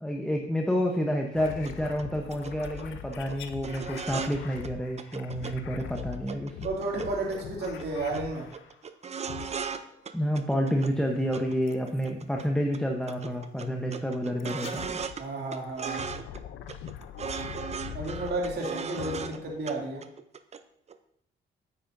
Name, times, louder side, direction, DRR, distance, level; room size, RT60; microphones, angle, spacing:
voice 1, 0.0-6.6 10.1-15.0, equal, 5° left, 1 dB, 0.9 m, -29 dB
sound 1, 1.4-8.8 9.2-10.0 11.7-12.1 13.1-13.2 14.4-15.2 15.6-20.0, left 9 dB, 75° left, 0.6 m, -43 dB
sound 2, 1.7-1.8 2.0-2.1 2.3-2.8 3.1-3.4 3.6-4.4 4.6-4.7 5.0-5.5 5.8-7.4 7.6-7.9 8.1-8.2 8.5-9.8 10.1-10.9 11.3-12.4 12.7-12.8 13.1-15.2 15.5-16.4 16.7-19.4 19.7-19.8 20.0-20.6 20.9-21.0, right 6 dB, 35° right, 0.6 m, -37 dB
voice 2, 6.6-8.5 15.2-16.1 17.9-20.0, right 2 dB, 55° right, -2 dB, 2.5 m, -32 dB
9.3 x 8.5 x 2.6 m, 0.74 s
cardioid pair, 90°, 20 cm